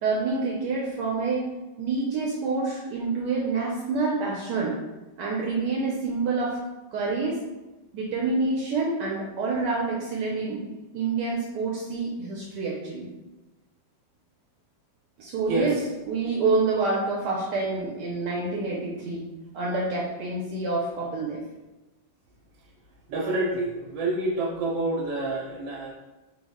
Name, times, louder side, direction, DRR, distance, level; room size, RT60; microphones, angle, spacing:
voice 1, 0.0-1.4 1.8-4.8 5.2-6.6 6.9-7.4 7.9-10.6 10.9-13.1 15.2-15.8 16.1-19.3 19.5-21.4, right 3 dB, 75° right, -4 dB, 1.1 m, -27 dB
voice 2, 15.5-15.8 23.1-25.9, right 2 dB, 90° right, -2 dB, 1.3 m, -28 dB
3.9 x 2.0 x 3.5 m, 1.1 s
omnidirectional pair, 2.0 m